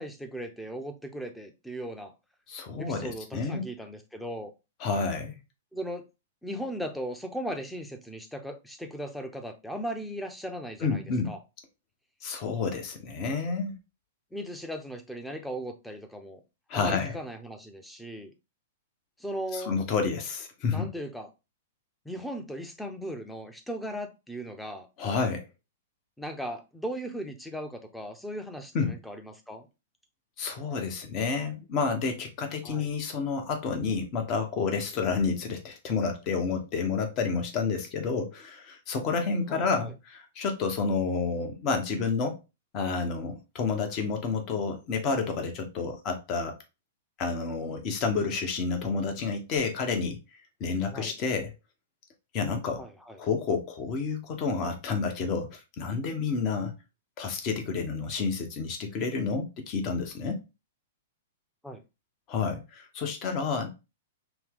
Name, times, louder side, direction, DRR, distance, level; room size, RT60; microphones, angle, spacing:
voice 1, 0.0-2.1 2.8-4.5 5.7-6.0 6.4-11.4 14.3-16.4 16.7-18.3 19.2-19.7 20.7-21.3 22.0-24.9 26.2-29.7 32.6-32.9 39.5-39.9 50.9-51.1 52.8-53.2 61.6-61.8, equal, 5° left, 0.8 m, -37 dB
voice 2, 2.5-3.6 4.8-5.4 10.8-11.3 12.2-13.8 16.7-17.1 19.5-20.9 25.0-25.4 28.7-29.0 30.4-42.4 42.7-46.5 47.2-50.2 50.6-51.5 52.3-52.9 53.2-56.7 57.2-60.4 62.3-63.7, left 4 dB, 40° left, 1.2 m, -30 dB
5.7 x 2.3 x 3.7 m
hypercardioid pair, 115°, 0 cm